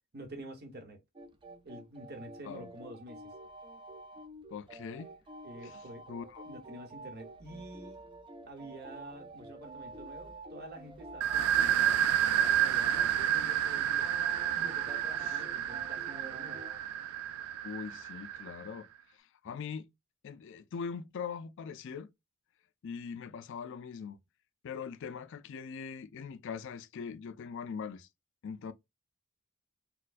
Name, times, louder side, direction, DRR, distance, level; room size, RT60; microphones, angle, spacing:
voice 1, 0.1-1.0 1.6-3.2 5.4-6.0 6.4-8.1 8.5-12.0 12.5-14.1 14.5-16.6, right 1 dB, 50° right, 1.0 m, -48 dB
sound 1, 1.2-16.8, right 2 dB, 25° right, 0.5 m, -49 dB
voice 2, 4.5-5.2 5.6-5.8 6.1-6.5 15.2-15.3 17.6-18.9 19.2-19.9 20.2-22.1 22.8-24.2 24.6-28.1 28.4-28.7, left 6 dB, 60° left, 0.4 m, -41 dB
sound 2, 11.2-18.7, right 10 dB, 85° right, 0.3 m, -30 dB
4.2 x 2.2 x 2.4 m
head